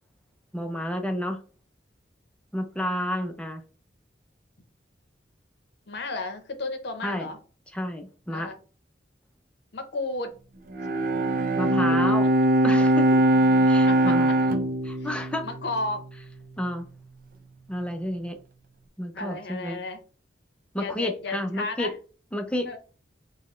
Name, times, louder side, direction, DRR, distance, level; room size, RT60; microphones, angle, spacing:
voice 1, 0.5-1.4 2.5-3.6 7.0-7.3 7.7-8.5 11.6-12.3 12.6-13.2 13.7-14.3 14.8-15.5 16.6-16.8 17.7-18.4 19.0-19.8 20.7-21.9 22.3-22.8, left 1 dB, 5° left, 6 dB, 0.4 m, -30 dB
voice 2, 5.9-7.4 8.3-8.5 9.7-10.3 13.9-14.2 15.0-15.1 15.4-16.0 19.1-20.0 20.8-21.9 22.6-22.8, left 2 dB, 65° left, 6 dB, 0.8 m, -33 dB
Bowed string instrument, 10.7-16.3, right 1 dB, 50° right, 0.5 m, -22 dB
4.0 x 2.2 x 3.1 m, 0.37 s
head